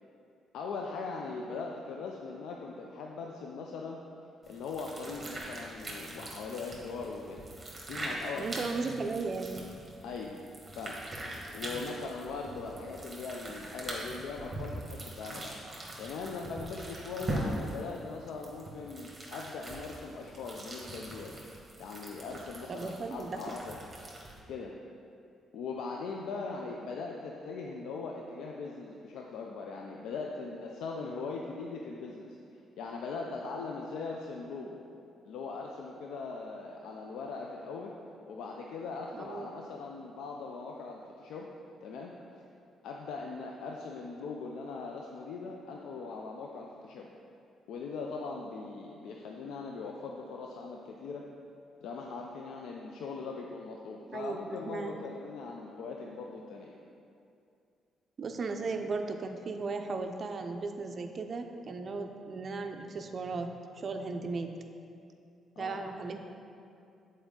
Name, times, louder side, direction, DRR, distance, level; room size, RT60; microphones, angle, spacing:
voice 1, 0.5-4.0 4.5-7.5 7.9-8.6 10.0-10.4 10.7-11.0 11.5-15.6 16.0-21.4 21.8-23.8 24.5-24.7 25.5-32.4 32.8-34.8 35.2-37.9 38.3-41.5 41.8-42.1 42.8-47.1 47.7-51.3 51.8-56.7 65.6-65.8, left 4 dB, 80° left, 0 dB, 0.4 m, -40 dB
sound 1, 4.4-24.4, right 1 dB, 25° right, 1.3 m, -42 dB
voice 2, 8.4-9.7 22.7-23.4 39.1-39.5 54.1-55.0 58.2-64.5 65.6-66.2, right 3 dB, 45° right, 5 dB, 0.5 m, -36 dB
7.1 x 4.3 x 3.7 m, 2.6 s
cardioid pair, 90°, 0 cm